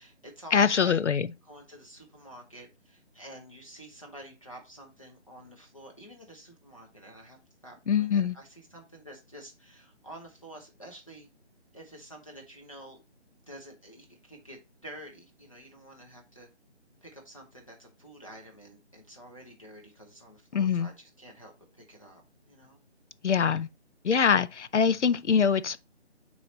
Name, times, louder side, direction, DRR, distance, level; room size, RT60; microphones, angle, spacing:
voice 1, 0.0-1.0 1.4-7.4 7.6-11.3 11.7-13.0 13.5-16.5 17.0-22.8 25.2-25.3, right 1 dB, 30° left, 0.8 m, -49 dB
voice 2, 0.5-1.3 7.9-8.3 20.5-20.9 23.2-23.7 24.0-25.8, left 6 dB, 80° left, 0.6 m, -23 dB
8.4 x 3.2 x 4.0 m
figure-of-eight pair, 175°, 35 cm